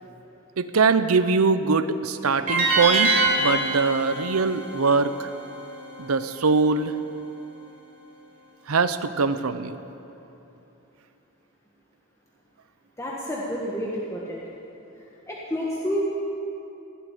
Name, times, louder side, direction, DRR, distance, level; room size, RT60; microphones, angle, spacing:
voice 1, 0.6-5.3 6.0-6.9 8.7-9.8, right 4 dB, 90° right, 12 dB, 0.7 m, -22 dB
sound 1, 2.5-5.6, right 2 dB, 40° right, 3.5 m, -24 dB
voice 2, 13.0-14.4 15.3-16.0, equal, 15° left, -5 dB, 1.5 m, -29 dB
17.5 x 7.9 x 9.9 m, 3.0 s
head